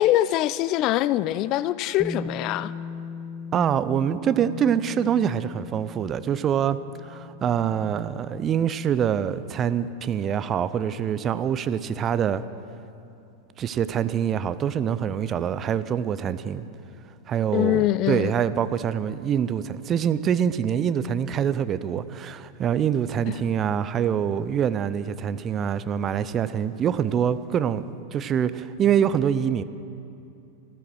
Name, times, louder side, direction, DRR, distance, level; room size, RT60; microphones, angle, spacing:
voice 1, 0.0-2.7 17.5-18.3, left 14 dB, 40° left, 0.3 m, -23 dB
Bass guitar, 2.0-8.2, left 3 dB, 5° left, 0.9 m, -39 dB
voice 2, 3.5-12.4 13.6-16.7 17.3-29.6, right 8 dB, 25° right, 0.5 m, -25 dB
14.5 x 13.0 x 6.2 m
figure-of-eight pair, 90°, 0 cm